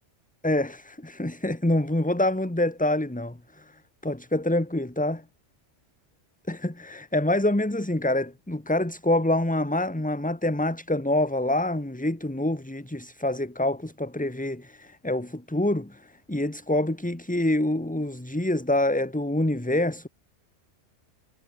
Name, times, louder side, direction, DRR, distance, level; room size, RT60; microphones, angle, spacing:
voice 1, 0.4-3.6 4.0-5.2 6.5-16.0 16.3-20.1, left 1 dB, 5° left, 1.2 m, -26 dB
omnidirectional pair, 1.3 m